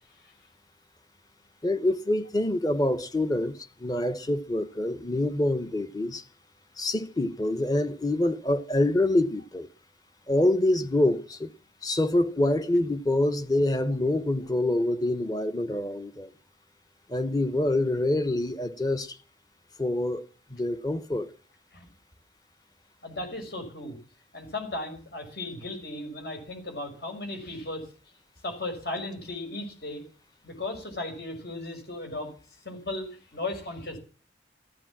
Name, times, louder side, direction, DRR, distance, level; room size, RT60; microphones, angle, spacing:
voice 1, 1.6-3.5 3.8-6.2 6.8-9.7 10.3-11.5 11.8-16.3 17.1-19.2 19.8-20.2 20.5-21.3, left 1 dB, 20° left, 1.1 m, -26 dB
voice 2, 23.0-24.0 24.3-27.9 28.4-30.0 30.4-32.3 32.6-34.0, left 2 dB, 65° left, 6.0 m, -36 dB
15.0 x 13.0 x 7.4 m
head